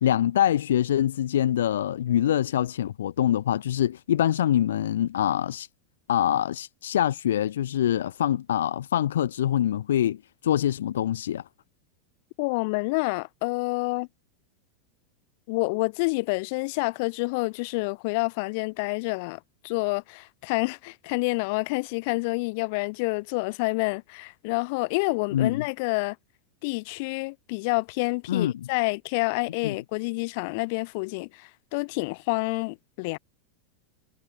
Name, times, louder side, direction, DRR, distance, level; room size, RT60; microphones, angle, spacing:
voice 1, 0.0-5.7 6.1-11.4 25.3-25.6 28.3-28.5 29.6-29.8, left 11 dB, 85° left, 1.2 m, -24 dB
voice 2, 12.4-14.1 15.5-26.2 26.6-33.2, left 28 dB, 60° left, 2.5 m, -28 dB
hypercardioid pair, 120°, 0 cm